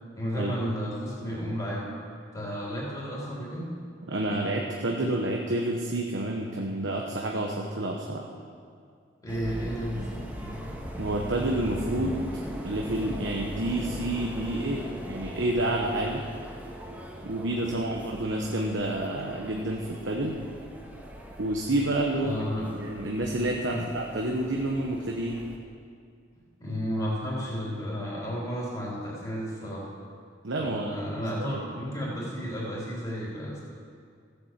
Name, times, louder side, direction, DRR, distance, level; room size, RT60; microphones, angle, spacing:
voice 1, 0.2-1.8 2.3-3.7 9.2-10.6 17.7-18.0 22.1-22.7 23.7-23.9 26.3-29.9 30.6-33.6, equal, 25° left, -6 dB, 3.3 m, -33 dB
voice 2, 4.1-8.2 11.0-12.2 12.6-16.2 17.2-20.4 21.4-22.4 22.8-25.4 30.4-31.6, right 1 dB, 80° right, 0 dB, 1.1 m, -29 dB
sound 1, 9.3-25.6, equal, 10° right, 1.7 m, -40 dB
14.5 x 8.5 x 7.5 m, 2.2 s
head